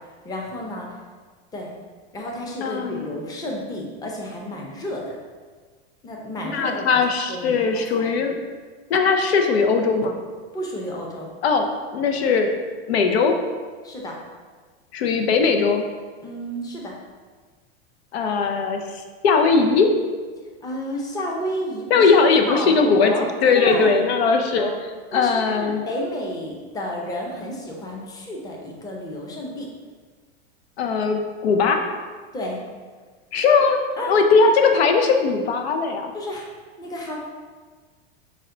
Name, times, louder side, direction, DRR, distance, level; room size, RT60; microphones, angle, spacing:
voice 1, 0.2-0.9 1.5-1.7 2.1-5.1 6.0-7.0 7.3-8.1 10.5-11.3 13.8-14.2 16.2-16.9 20.6-22.1 22.5-23.3 23.5-24.1 24.6-24.8 25.1-29.7 32.3-32.6 34.0-34.1 36.1-36.5 36.8-37.2, left 1 dB, 10° left, -1 dB, 0.6 m, -31 dB
voice 2, 2.6-3.2 6.5-8.4 8.9-10.2 11.4-12.5 12.9-13.3 14.9-15.8 18.1-19.9 21.9-25.8 30.8-31.9 33.3-33.8 34.1-36.1, left 4 dB, 90° left, 5 dB, 0.6 m, -19 dB
5.5 x 2.2 x 3.7 m, 1.5 s
supercardioid pair, 130°, 31 cm